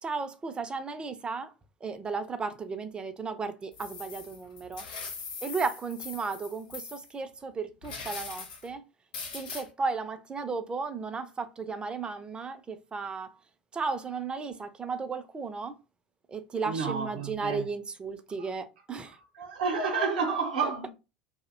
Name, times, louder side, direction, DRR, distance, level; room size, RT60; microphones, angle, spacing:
voice 1, 0.0-1.5 1.8-4.9 5.4-8.8 9.3-13.4 13.7-15.8 16.3-19.2 20.6-20.9, right 4 dB, 20° right, 0.4 m, -34 dB
sound 1, 3.7-7.1 7.8-8.7 9.1-9.6, left 5 dB, 70° left, 0.7 m, -41 dB
voice 2, 16.6-17.6 19.4-20.9, right 5 dB, 70° right, 0.7 m, -30 dB
2.5 x 2.1 x 2.4 m
figure-of-eight pair, 70°, 5 cm